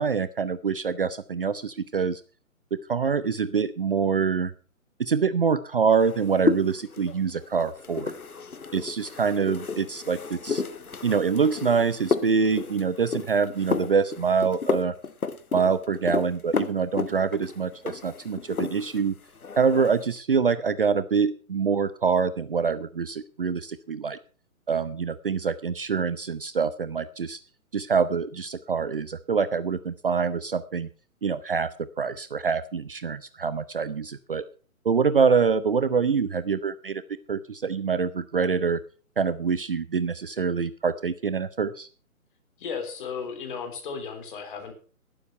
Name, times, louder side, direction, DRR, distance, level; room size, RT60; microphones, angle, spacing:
voice 1, 0.0-2.2 2.9-4.5 5.0-8.1 8.7-10.6 11.0-14.9 15.5-19.1 19.6-24.2 24.7-27.4 27.7-30.9 31.2-31.7 32.0-34.4 34.8-37.0 37.3-38.8 39.2-41.9, right 5 dB, 40° right, 15 dB, 0.7 m, -25 dB
sound 1, 6.0-19.1 19.4-20.1, left 4 dB, 75° left, 1.2 m, -32 dB
voice 2, 42.6-44.7, left 6 dB, 35° left, 5 dB, 3.7 m, -35 dB
12.0 x 11.0 x 5.6 m, 0.38 s
figure-of-eight pair, 140°, 43 cm